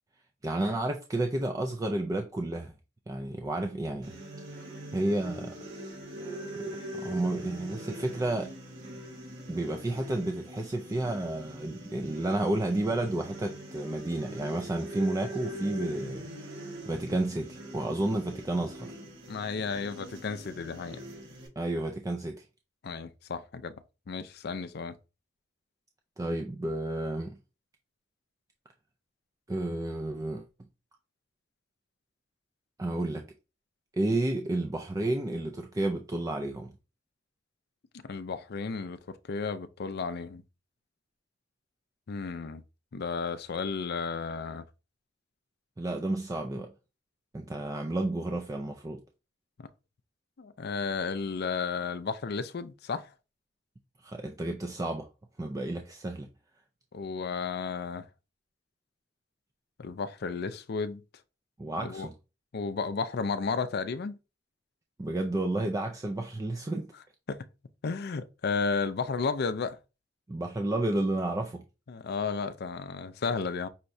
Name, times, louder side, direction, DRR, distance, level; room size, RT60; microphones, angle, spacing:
voice 1, 0.4-2.7 3.1-4.2 4.5-5.6 6.6-6.7 6.9-8.5 9.5-16.3 16.9-19.0 21.6-22.4 26.2-27.4 29.5-30.5 32.8-33.3 33.9-36.7 45.8-46.7 47.3-49.0 54.0-55.1 55.4-56.3 61.6-62.1 65.0-66.9 70.3-71.6, right 2 dB, 20° right, 0.4 m, -31 dB
sound 1, 4.0-21.5, right 1 dB, 80° right, 2.5 m, -42 dB
voice 2, 19.3-21.0 22.8-23.7 24.1-24.9 38.0-39.0 39.3-40.4 42.1-42.6 42.9-44.6 49.6-49.7 50.4-53.1 56.9-58.1 59.8-61.0 61.8-62.1 62.5-64.2 67.3-67.4 67.8-69.8 71.9-73.7, left 5 dB, 55° left, 0.5 m, -33 dB
5.6 x 3.2 x 2.6 m
head